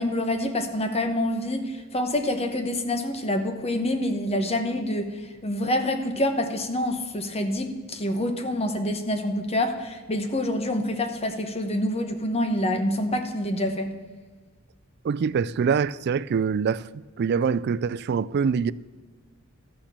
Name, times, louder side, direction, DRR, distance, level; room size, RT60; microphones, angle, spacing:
voice 1, 0.0-5.1 5.4-13.9, left 1 dB, 30° left, 1.1 m, -26 dB
voice 2, 15.0-16.9 17.2-18.7, right 6 dB, 50° right, 0.3 m, -24 dB
13.5 x 6.9 x 7.3 m
head